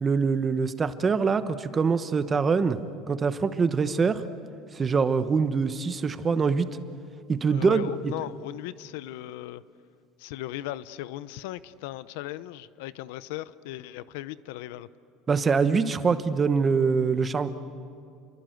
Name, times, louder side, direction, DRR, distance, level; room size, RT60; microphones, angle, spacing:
voice 1, 0.0-2.8 3.1-4.2 4.7-6.7 7.3-8.1 15.3-17.5, right 5 dB, 20° right, 11 dB, 1.0 m, -24 dB
voice 2, 7.5-9.6 10.2-14.9, left 15 dB, 85° left, 16 dB, 0.7 m, -37 dB
30.0 x 23.0 x 7.9 m, 2.5 s
cardioid pair, 145°, 0 cm